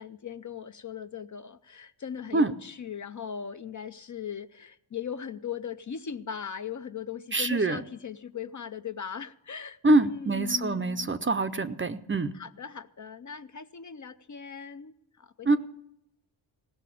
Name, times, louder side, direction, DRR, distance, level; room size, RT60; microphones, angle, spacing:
voice 1, 0.0-11.1 12.4-15.6, left 7 dB, 40° left, 11 dB, 0.6 m, -39 dB
voice 2, 7.3-7.8 9.8-12.3 15.5-15.6, right 2 dB, 25° right, 11 dB, 0.5 m, -25 dB
17.5 x 6.6 x 8.4 m, 0.78 s
wide cardioid pair, 110°, 46 cm